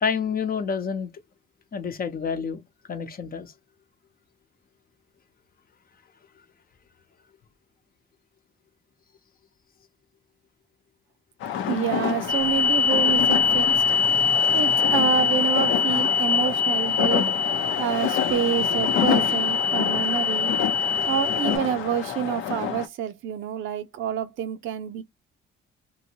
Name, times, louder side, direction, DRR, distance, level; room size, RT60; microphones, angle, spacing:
voice 1, 0.0-1.1 1.7-3.5, left 6 dB, 45° left, 0.8 m, -28 dB
sound 1, 11.4-22.9, left 9 dB, 80° left, 0.7 m, -28 dB
voice 2, 11.7-13.8 14.5-17.3 17.8-20.5 21.0-25.0, right 9 dB, 80° right, 0.6 m, -27 dB
sound 2, 12.3-21.6, left 5 dB, 25° right, 0.7 m, -23 dB
3.0 x 2.8 x 2.8 m
cardioid pair, 90°, 20 cm